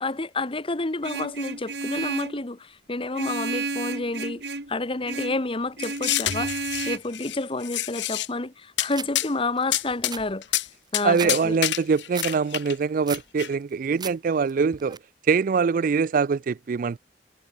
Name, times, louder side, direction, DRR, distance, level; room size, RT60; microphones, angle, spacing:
voice 1, 0.0-4.4 4.7-10.4 10.9-11.6, left 2 dB, 30° left, 1.1 m, -29 dB
Vehicle horn car horn honking, 1.0-2.4 3.1-4.7 5.1-5.4 5.8-7.0, right 3 dB, 70° right, 3.3 m, -32 dB
sound 1, 5.8-7.4 7.6-8.3 8.8-8.9 9.1-9.3 9.7-10.1 10.4-10.7 10.9-11.0 11.3-12.7 13.1-13.5, left 13 dB, 90° left, 0.9 m, -27 dB
sound 2, 8.9-9.1 9.6-9.7 9.9-11.3 11.7-12.3 12.7-13.3 13.7-14.2 14.5-15.0, right 6 dB, 25° right, 2.6 m, -36 dB
voice 2, 11.0-15.0 15.3-17.0, right 5 dB, 50° right, 0.4 m, -23 dB
head